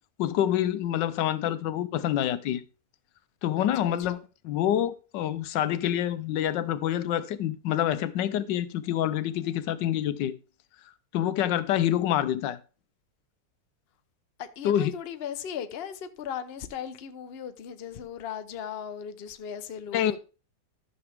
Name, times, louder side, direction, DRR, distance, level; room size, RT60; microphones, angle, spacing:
voice 1, 0.2-2.6 3.4-4.2 4.4-10.4 11.1-12.6 14.6-14.9 19.9-20.2, left 11 dB, 90° left, 1.3 m, -27 dB
voice 2, 3.6-4.2 14.4-20.2, left 8 dB, 50° left, 0.8 m, -37 dB
12.5 x 6.9 x 3.5 m
omnidirectional pair, 1.9 m